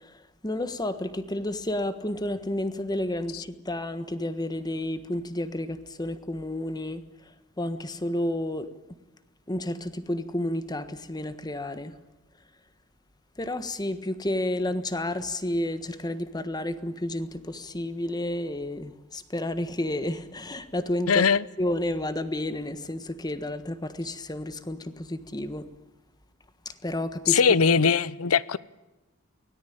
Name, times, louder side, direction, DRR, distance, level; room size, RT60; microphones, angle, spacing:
voice 1, 0.4-7.0 7.6-8.7 9.5-11.9 13.4-21.2 21.6-25.6 26.8-27.4, left 1 dB, 20° left, 1.4 m, -31 dB
voice 2, 21.1-21.5 27.3-28.6, left 6 dB, 85° left, 0.7 m, -21 dB
24.0 x 18.0 x 8.7 m
head